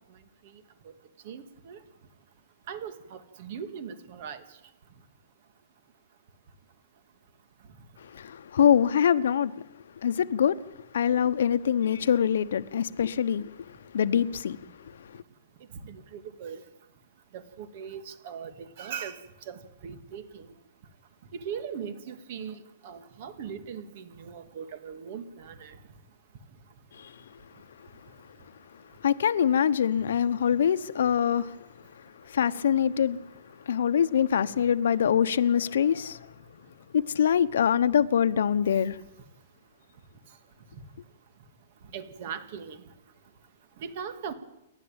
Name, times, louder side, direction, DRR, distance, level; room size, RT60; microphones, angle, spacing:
voice 1, 1.3-1.8 2.7-4.4 15.8-16.6 17.3-19.2 19.5-19.6 19.8-20.5 21.5-22.5 22.8-25.7 41.9-42.8 43.8-44.3, right 7 dB, 40° right, 2.0 m, -39 dB
voice 2, 8.5-9.5 10.0-10.5 10.9-13.4 13.9-14.6 29.0-31.5 32.3-33.2 33.7-36.2 36.9-38.9, left 8 dB, 70° left, 1.0 m, -24 dB
29.0 x 11.5 x 8.9 m
hypercardioid pair, 170°, 0 cm